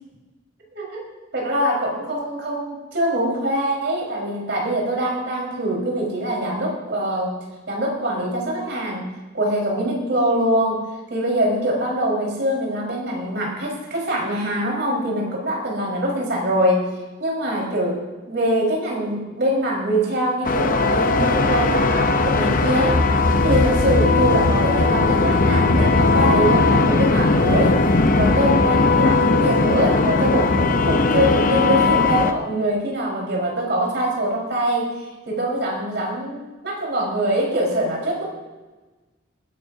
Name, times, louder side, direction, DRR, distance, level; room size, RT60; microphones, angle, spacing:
voice 1, 0.7-1.0 1.3-7.4 7.7-9.0 9.3-10.8 11.1-16.8 17.2-18.0 18.3-23.0 23.4-27.8 28.2-34.9 35.3-38.2, right 1 dB, 60° right, -2 dB, 4.5 m, -23 dB
sound 1, 20.4-32.3, left 3 dB, 45° left, 0.7 m, -18 dB
20.5 x 12.0 x 2.7 m, 1.2 s
head